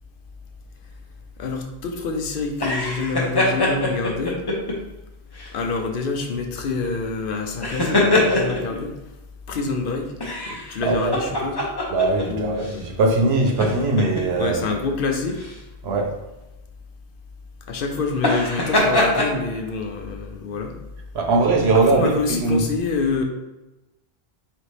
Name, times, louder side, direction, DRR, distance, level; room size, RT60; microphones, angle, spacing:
voice 1, 1.4-4.4 5.5-9.0 9.5-10.1 10.4-11.6 12.2-12.7 14.4-15.4 17.7-20.7 21.7-23.2, left 4 dB, 65° left, 3 dB, 0.7 m, -27 dB
sound 1, 2.5-4.7 5.3-5.6 7.5-8.8 10.2-12.2 12.6-12.8 13.4-14.2 15.3-15.6 18.1-19.3, left 1 dB, 25° left, 0.7 m, -22 dB
voice 2, 10.8-11.2 11.9-14.6 15.8-16.1 21.1-22.7, right 3 dB, 90° right, 1 dB, 1.0 m, -20 dB
4.0 x 3.3 x 3.2 m, 1.0 s
omnidirectional pair, 1.0 m